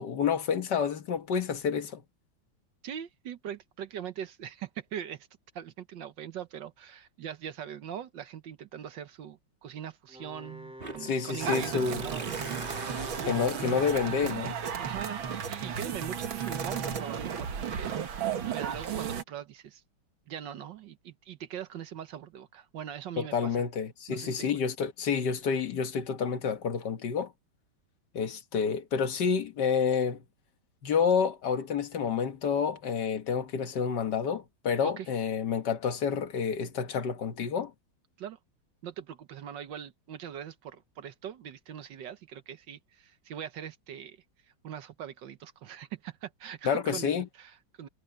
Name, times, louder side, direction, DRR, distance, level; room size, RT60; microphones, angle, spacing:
voice 1, 0.0-2.0 11.0-12.1 13.3-14.6 23.2-27.3 28.1-30.2 30.8-37.7 46.6-47.3, left 6 dB, 60° left, 1.9 m, -29 dB
voice 2, 2.8-5.3 5.5-12.7 14.8-18.0 18.5-19.8 20.3-23.6 24.1-24.6 34.8-35.1 38.2-38.4 38.8-44.2 44.6-47.9, right 9 dB, 70° right, 1.6 m, -41 dB
Wind instrument woodwind instrument, 10.1-13.8, equal, 5° right, 2.4 m, -46 dB
sound 1, 10.8-18.3, right 2 dB, 30° right, 2.6 m, -45 dB
sound 2, 11.4-19.2, right 7 dB, 85° right, 2.3 m, -34 dB
omnidirectional pair, 2.1 m